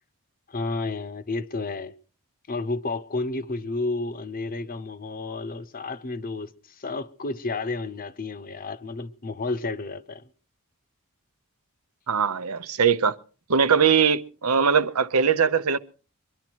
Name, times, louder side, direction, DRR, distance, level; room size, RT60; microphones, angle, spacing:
voice 1, 0.5-1.9 2.5-10.3, left 3 dB, 40° left, 0.8 m, -31 dB
voice 2, 12.1-13.2 13.5-15.8, right 6 dB, 85° right, 0.9 m, -21 dB
23.5 x 11.0 x 4.5 m
head